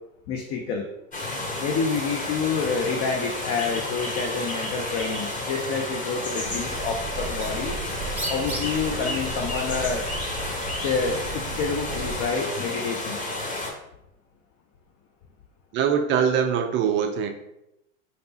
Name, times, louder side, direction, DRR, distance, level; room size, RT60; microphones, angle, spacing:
voice 1, 0.3-0.8 1.6-7.8 8.3-10.1 10.8-13.2, left 5 dB, 40° left, 2 dB, 0.6 m, -28 dB
sound 1, 1.1-13.7, left 2 dB, 20° left, 1.2 m, -31 dB
Bird, 6.4-12.3, right 2 dB, 5° right, 0.7 m, -35 dB
voice 2, 15.7-17.3, right 7 dB, 30° right, 5 dB, 0.4 m, -22 dB
4.0 x 3.3 x 2.7 m, 0.85 s
hypercardioid pair, 85°, 42 cm